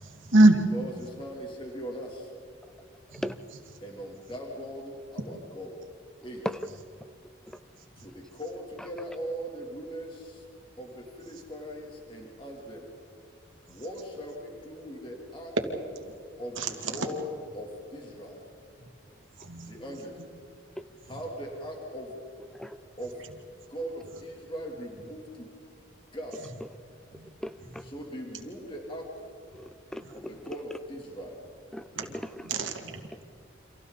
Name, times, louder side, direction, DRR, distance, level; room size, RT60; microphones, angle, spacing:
voice 1, 0.0-0.6 3.1-3.2 16.6-16.7 19.4-19.8 27.1-27.3 32.0-32.1 32.5-33.0, right 1 dB, 85° right, 4 dB, 2.5 m, -23 dB
voice 2, 0.7-2.3 3.8-5.8 6.2-6.5 8.0-10.4 10.8-12.9 13.7-15.5 16.4-18.4 19.7-20.2 21.1-22.2 23.0-23.3 23.7-25.5 25.9-26.4 27.8-29.1 30.1-31.4 31.9-32.2 32.8-33.2, equal, 25° left, 0 dB, 3.1 m, -40 dB
voice 3, 27.1-27.8 29.5-30.3 31.7-31.9 32.1-32.5, equal, 5° left, 11 dB, 0.7 m, -37 dB
29.5 x 26.5 x 4.1 m, 2.5 s
head